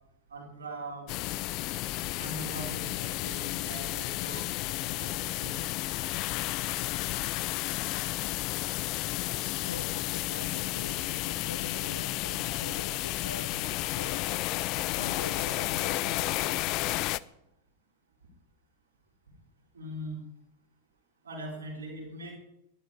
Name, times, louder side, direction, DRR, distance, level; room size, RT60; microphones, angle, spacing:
voice 1, 0.3-1.1 2.2-5.7 19.7-20.2 21.2-22.3, right 1 dB, 70° right, -2 dB, 3.9 m, -41 dB
sound 1, 1.1-17.2, left 18 dB, 40° left, 0.4 m, -32 dB
voice 2, 9.6-16.5, left 4 dB, 75° left, 13 dB, 0.7 m, -44 dB
12.5 x 11.5 x 4.7 m, 0.82 s
figure-of-eight pair, 90°, 0 cm